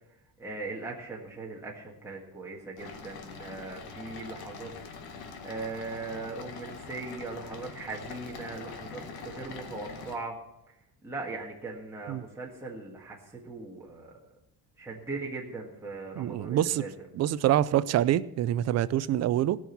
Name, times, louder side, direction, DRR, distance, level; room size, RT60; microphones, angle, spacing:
voice 1, 0.4-4.7 5.0-10.4 10.7-10.8 11.0-14.2 14.8-16.9, right 3 dB, 5° right, 1.6 m, -39 dB
sound 1, 2.8-10.2, left 5 dB, 75° left, 1.9 m, -43 dB
voice 2, 16.2-16.8 17.1-19.6, right 12 dB, 45° right, 0.4 m, -26 dB
18.0 x 6.2 x 7.0 m
cardioid pair, 175°, 38 cm